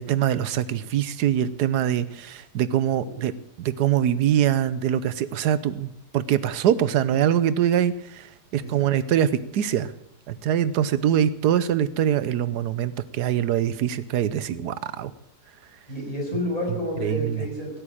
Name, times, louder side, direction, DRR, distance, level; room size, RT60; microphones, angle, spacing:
voice 1, 0.0-3.3 3.6-8.3 8.5-9.9 10.3-15.1 17.0-17.4, right 10 dB, 85° right, 16 dB, 1.3 m, -23 dB
voice 2, 2.9-3.3 8.6-8.7 9.0-9.1 15.9-17.7, left 1 dB, 20° left, -3 dB, 6.3 m, -30 dB
16.5 x 8.8 x 8.7 m, 0.77 s
omnidirectional pair, 1.7 m